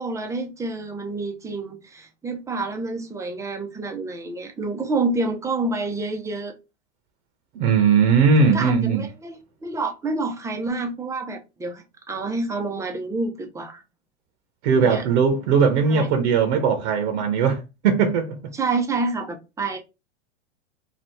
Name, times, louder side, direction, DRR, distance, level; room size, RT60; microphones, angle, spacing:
voice 1, 0.0-6.5 8.5-13.8 14.8-15.0 15.9-16.1 18.5-19.8, right 3 dB, 10° right, 0.5 m, -28 dB
voice 2, 7.5-9.0 14.6-18.4, right 5 dB, 65° right, 0.8 m, -19 dB
2.8 x 2.4 x 3.4 m
hypercardioid pair, 115°, 37 cm